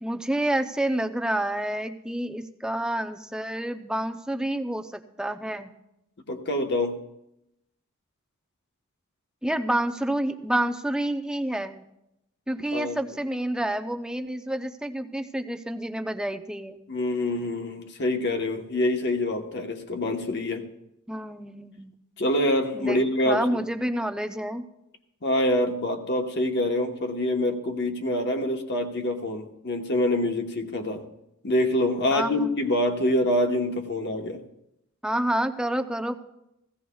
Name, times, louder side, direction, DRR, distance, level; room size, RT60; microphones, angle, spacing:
voice 1, 0.0-5.7 9.4-11.8 12.5-16.8 21.1-21.9 22.7-23.0 23.3-24.6 32.1-32.5 35.0-36.2, right 1 dB, 5° right, 7 dB, 0.5 m, -28 dB
voice 2, 6.3-7.0 12.7-13.0 16.9-20.7 22.2-23.6 25.2-31.1 31.4-34.4, left 1 dB, 50° left, 4 dB, 1.2 m, -26 dB
16.5 x 16.0 x 2.3 m, 0.85 s
head